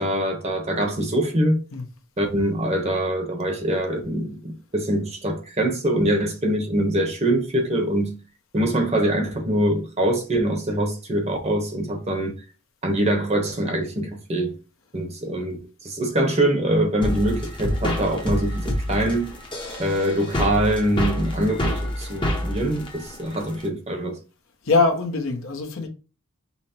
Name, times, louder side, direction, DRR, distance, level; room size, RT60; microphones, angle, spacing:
voice 1, 0.0-1.6 2.2-8.1 8.5-12.3 12.8-14.5 14.9-15.6 15.8-19.3 19.8-24.2, right 1 dB, 30° right, 0.9 m, -24 dB
sound 1, 17.0-23.7, equal, 20° left, 0.8 m, -27 dB
voice 2, 24.6-25.9, left 3 dB, 65° left, 0.9 m, -22 dB
5.6 x 2.1 x 4.3 m
head